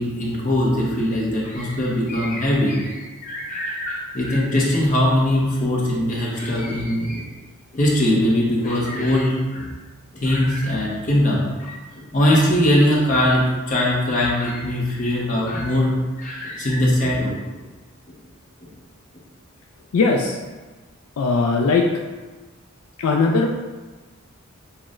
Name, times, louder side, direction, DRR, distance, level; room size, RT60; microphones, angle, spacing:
voice 1, 0.0-7.3 7.7-9.7 10.1-17.3, left 1 dB, 35° left, -4 dB, 0.7 m, -21 dB
voice 2, 19.9-20.4 21.2-21.9 23.0-23.6, left 3 dB, 75° left, 1 dB, 0.3 m, -19 dB
5.6 x 2.1 x 2.4 m, 1.3 s
head